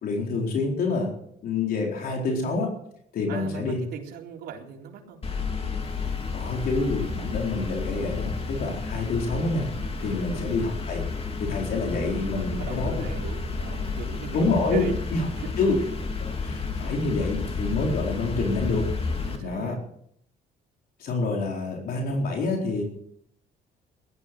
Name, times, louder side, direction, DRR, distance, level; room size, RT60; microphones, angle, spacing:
voice 1, 0.0-1.1 1.4-2.7 3.1-3.8 6.3-9.7 10.0-11.0 11.4-13.0 14.3-14.8 15.1-15.3 15.6-15.8 16.2-18.9 19.4-19.8 21.0-22.8, left 3 dB, 60° left, 0 dB, 4.3 m, -27 dB
voice 2, 3.3-5.3 10.2-10.4 12.3-14.4 14.7-14.9 15.4-15.5 19.2-19.8, right 8 dB, 70° right, 0 dB, 3.8 m, -38 dB
sound 1, 5.2-19.4, left 4 dB, 35° left, 3.1 m, -31 dB
17.0 x 12.5 x 6.2 m, 0.69 s
cardioid pair, 110°, 17 cm